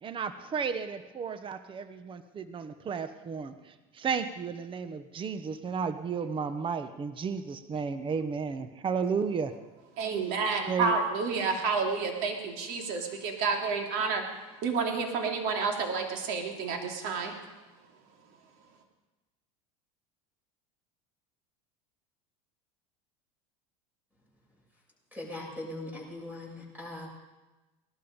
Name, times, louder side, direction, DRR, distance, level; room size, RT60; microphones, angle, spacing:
voice 1, 0.0-9.6 10.7-11.0, right 6 dB, 30° right, 11 dB, 1.1 m, -33 dB
voice 2, 10.0-14.2 14.6-17.3, right 4 dB, 65° right, 3 dB, 3.1 m, -30 dB
voice 3, 25.1-27.1, left 2 dB, 10° right, -2 dB, 7.4 m, -40 dB
19.0 x 12.5 x 5.3 m, 1.1 s
hypercardioid pair, 95°, 17 cm